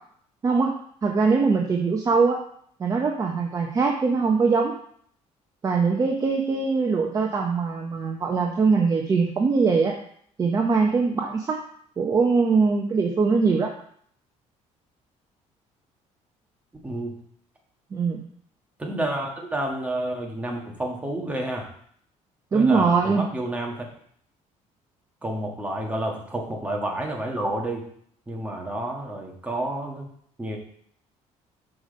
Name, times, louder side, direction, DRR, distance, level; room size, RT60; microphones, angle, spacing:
voice 1, 1.0-2.4 2.8-4.7 5.6-9.9 10.4-11.6 12.0-13.7 17.9-18.2 22.5-23.2, right 4 dB, 25° right, 1 dB, 0.7 m, -22 dB
voice 2, 16.8-17.1 18.8-21.7 22.5-23.8 25.2-27.8 28.3-30.1 30.4-30.6, right 1 dB, 10° right, 0 dB, 1.4 m, -30 dB
6.1 x 5.1 x 5.1 m, 0.63 s
cardioid pair, 135°, 13 cm